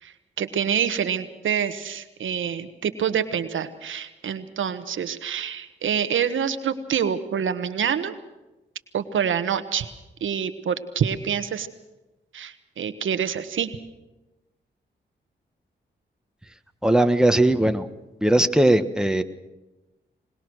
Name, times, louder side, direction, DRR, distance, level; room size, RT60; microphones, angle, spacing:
voice 1, 0.0-8.1 8.9-9.9 10.2-11.7 12.3-13.7, right 8 dB, 85° right, 10 dB, 1.3 m, -26 dB
voice 2, 16.8-17.9 18.2-19.2, right 1 dB, 5° right, 7 dB, 1.5 m, -19 dB
22.5 x 20.0 x 6.3 m, 1.0 s
cardioid pair, 55°, 20 cm